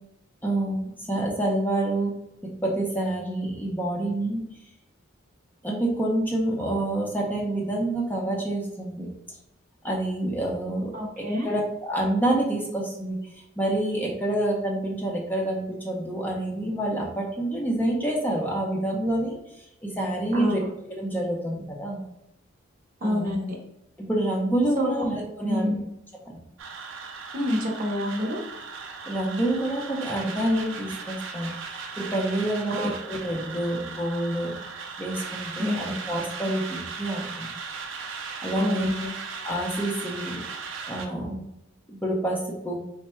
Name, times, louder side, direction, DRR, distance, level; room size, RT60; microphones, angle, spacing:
voice 1, 0.4-2.1 2.4-4.4 5.6-9.1 9.8-19.4 19.8-20.6 20.9-22.0 23.0-23.3 24.0-25.8 26.3-26.4 29.1-31.5 32.0-34.6 35.0-37.5 38.4-38.9 39.4-40.4 40.9-41.4 41.9-42.8, right 1 dB, 10° left, -2 dB, 0.6 m, -27 dB
voice 2, 10.9-11.5 20.3-20.7 23.0-23.6 24.8-25.0 25.4-25.8 27.3-28.4 32.7-32.9 35.6-35.9 38.6-39.1, left 1 dB, 45° right, 0 dB, 0.8 m, -28 dB
sound 1, 26.6-41.1, right 5 dB, 75° right, 0.6 m, -37 dB
3.4 x 2.1 x 4.2 m, 0.84 s
head